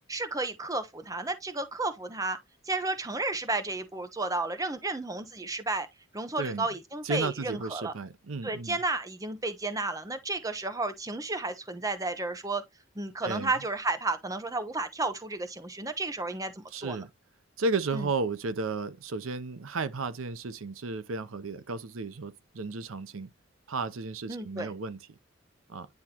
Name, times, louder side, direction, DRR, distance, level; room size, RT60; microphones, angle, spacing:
voice 1, 0.1-2.4 2.7-5.9 6.1-7.9 8.4-12.6 13.0-17.0 17.9-18.1 24.3-24.7, right 2 dB, 15° right, 0.6 m, -32 dB
voice 2, 6.4-6.7 7.0-8.8 13.2-13.5 16.7-17.1 17.6-23.3 23.7-25.0 25.7-25.9, right 3 dB, 85° right, 0.7 m, -33 dB
9.7 x 3.6 x 2.8 m
head